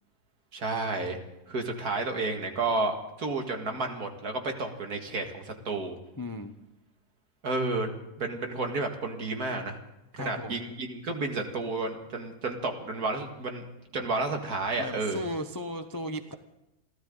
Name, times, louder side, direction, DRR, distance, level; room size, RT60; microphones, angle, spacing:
voice 1, 0.5-1.2 1.5-6.0 7.4-7.9 8.2-9.8 10.1-13.7 13.9-15.2, right 3 dB, 65° right, 4 dB, 2.4 m, -31 dB
voice 2, 6.2-6.5 10.2-10.6 14.8-16.3, left 1 dB, 20° left, 7 dB, 0.6 m, -36 dB
29.0 x 13.0 x 3.9 m, 0.91 s
omnidirectional pair, 1.7 m